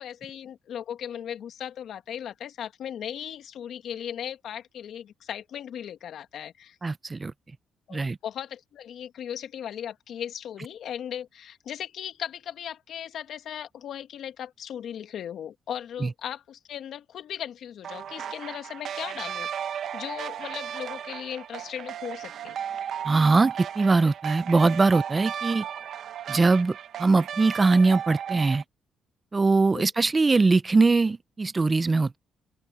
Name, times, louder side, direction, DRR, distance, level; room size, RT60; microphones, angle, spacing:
voice 1, 0.0-6.8 7.9-22.6 29.7-29.9, left 9 dB, 70° left, 2.0 m, -37 dB
voice 2, 6.8-7.3 7.9-8.2 16.0-16.1 23.0-25.7 26.3-28.6 29.3-32.2, right 3 dB, 25° right, 0.7 m, -22 dB
sound 1, 17.8-28.6, right 9 dB, 65° right, 0.9 m, -35 dB
open air
cardioid pair, 90°, 0 cm